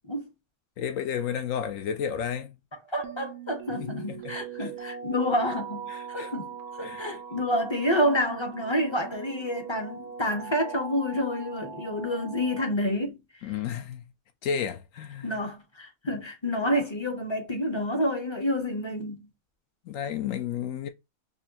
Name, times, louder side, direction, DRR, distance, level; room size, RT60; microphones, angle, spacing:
voice 1, 0.8-2.6 3.7-4.7 5.9-6.3 6.8-7.2 13.4-14.0 14.4-15.4 19.9-20.9, left 8 dB, 75° left, 0.9 m, -32 dB
voice 2, 2.9-13.5 15.2-19.3, equal, 30° left, 0.6 m, -29 dB
sound 1, 3.0-12.7, right 7 dB, 60° right, 0.8 m, -41 dB
5.2 x 2.2 x 2.7 m
omnidirectional pair, 1.5 m